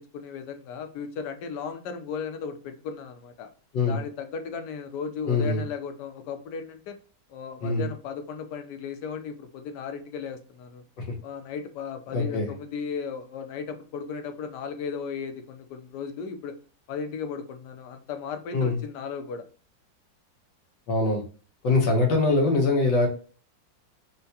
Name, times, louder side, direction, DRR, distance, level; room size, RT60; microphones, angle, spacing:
voice 1, 0.0-3.5 3.8-7.0 7.3-10.8 11.2-16.6 16.9-19.4, left 6 dB, 70° left, 7 dB, 1.1 m, -36 dB
voice 2, 5.3-5.6 7.6-7.8 11.0-11.1 12.1-12.5 18.5-18.8 20.9-21.2 21.6-23.1, left 3 dB, 90° left, 1 dB, 1.6 m, -23 dB
4.5 x 2.2 x 2.7 m, 0.39 s
omnidirectional pair, 2.0 m